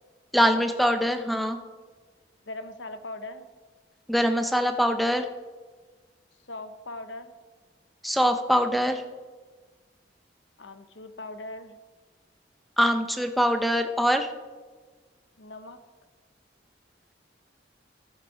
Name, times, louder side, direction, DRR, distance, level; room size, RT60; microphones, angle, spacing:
voice 1, 0.3-1.6 4.1-5.3 8.0-9.0 12.8-14.3, equal, ahead, 7 dB, 0.6 m, -23 dB
voice 2, 2.5-3.5 6.5-7.3 10.6-11.8 15.4-15.8, left 2 dB, 80° left, 9 dB, 0.9 m, -40 dB
15.5 x 6.6 x 4.9 m, 1.4 s
head